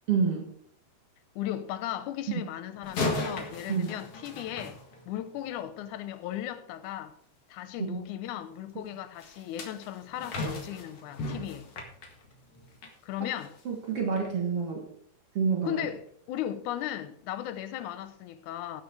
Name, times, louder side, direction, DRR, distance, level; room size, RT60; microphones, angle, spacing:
voice 1, 0.1-0.5 3.7-3.9 7.8-8.0 13.7-14.8 15.3-15.9, right 5 dB, 55° right, 2.4 m, -28 dB
voice 2, 1.4-4.8 5.1-7.1 7.5-11.7 13.0-13.6 15.6-18.8, left 12 dB, 85° left, 2.2 m, -36 dB
sound 1, 2.8-5.4 9.2-13.0 13.4-13.6 14.2-14.3, left 2 dB, 55° left, 2.6 m, -36 dB
17.5 x 6.3 x 4.7 m
omnidirectional pair, 3.4 m